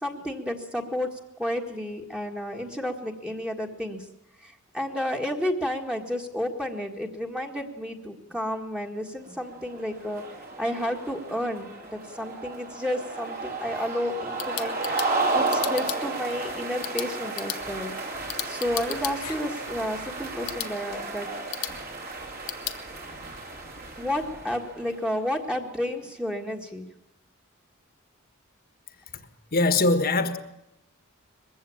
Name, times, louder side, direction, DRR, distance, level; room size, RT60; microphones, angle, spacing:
voice 1, 0.0-4.1 4.4-10.2 10.6-15.0 15.3-17.9 18.4-21.3 24.0-26.9, left 1 dB, 5° right, 1.7 m, -31 dB
sound 1, 9.5-25.2, right 3 dB, 50° right, 3.3 m, -33 dB
sound 2, 14.1-22.8, left 13 dB, 90° left, 1.4 m, -38 dB
voice 2, 28.9-30.4, left 2 dB, 45° left, 1.5 m, -24 dB
21.5 x 15.5 x 8.7 m
head